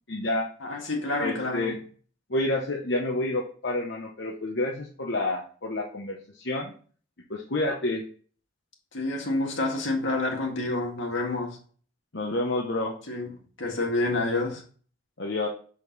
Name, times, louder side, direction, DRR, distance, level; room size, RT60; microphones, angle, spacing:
voice 1, 0.1-0.5 1.2-1.8 2.3-6.7 7.3-8.0 12.1-13.0 15.2-15.5, left 2 dB, 60° left, 0.9 m, -29 dB
voice 2, 0.6-1.8 8.9-11.6 13.1-13.3 13.6-14.6, left 2 dB, 75° left, 1.9 m, -28 dB
6.4 x 5.3 x 4.0 m
head